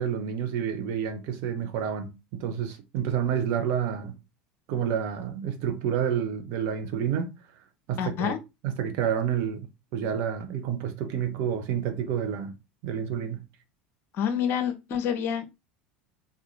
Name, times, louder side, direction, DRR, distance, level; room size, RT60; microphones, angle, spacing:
voice 1, 0.0-4.2 4.7-7.3 7.9-8.4 8.6-12.6 12.8-13.4, right 8 dB, 55° right, 1.0 m, -29 dB
voice 2, 8.0-8.4 14.2-15.5, left 8 dB, 50° left, 1.0 m, -28 dB
3.8 x 3.3 x 4.0 m
hypercardioid pair, 75°, 5 cm